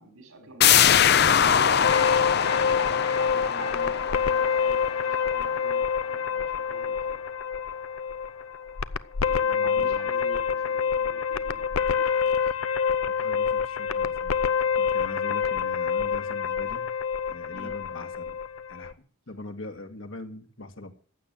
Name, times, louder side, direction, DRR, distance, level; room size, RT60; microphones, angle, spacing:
voice 1, 0.0-2.5 3.1-7.2 9.3-12.5 17.5-17.7, right 3 dB, 85° right, 5 dB, 4.4 m, -46 dB
sound 1, 0.6-6.1 6.4-6.5, left 8 dB, 50° left, 0.7 m, -23 dB
sound 2, 1.8-18.9, left 6 dB, 90° left, 0.7 m, -27 dB
voice 2, 9.5-10.1 13.1-17.0 17.3-18.4 18.7-19.0 19.3-20.9, left 2 dB, 70° left, 5 dB, 2.0 m, -42 dB
15.0 x 8.9 x 9.2 m, 0.42 s
head